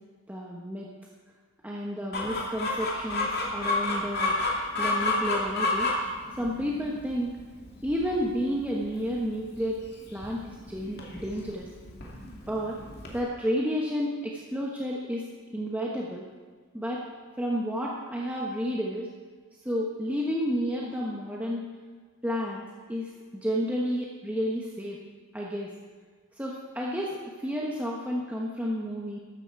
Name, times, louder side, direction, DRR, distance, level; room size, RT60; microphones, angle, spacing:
voice 1, 0.3-0.9 1.6-4.3 4.8-5.9 6.4-7.3 7.8-9.8 10.1-11.7 12.5-12.8 13.1-15.2 15.5-16.3 16.7-17.0 17.4-19.1 19.6-21.6 22.2-25.0 25.3-25.7 26.4-29.2, equal, 5° right, -3 dB, 1.2 m, -31 dB
Chicken rooster, 2.1-13.2, left 2 dB, 45° left, 2.6 m, -31 dB
14.0 x 12.5 x 4.7 m, 1.5 s
head